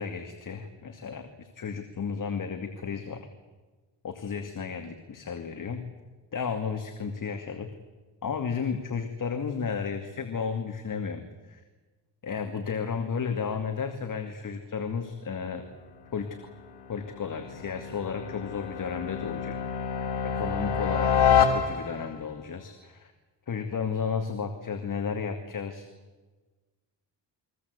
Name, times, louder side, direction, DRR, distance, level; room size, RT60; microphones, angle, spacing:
voice 1, 0.0-3.2 4.0-5.8 6.3-7.7 8.2-11.6 12.2-15.6 16.1-16.4 16.9-19.6 20.3-23.1 23.5-25.9, left 6 dB, 45° left, 5 dB, 2.5 m, -33 dB
sound 1, 15.8-22.2, left 7 dB, 70° left, 4.2 m, -28 dB
30.0 x 22.5 x 8.3 m, 1.3 s
wide cardioid pair, 130°, 44 cm